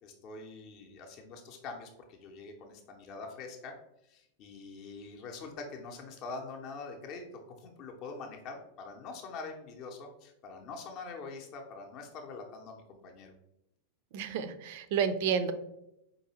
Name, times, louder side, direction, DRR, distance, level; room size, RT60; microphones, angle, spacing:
voice 1, 0.0-3.7 4.0-13.3, left 4 dB, 40° left, 2 dB, 0.6 m, -44 dB
voice 2, 14.1-15.5, right 7 dB, 50° right, 12 dB, 0.3 m, -30 dB
4.7 x 2.6 x 2.9 m, 0.82 s
figure-of-eight pair, 90°, 0 cm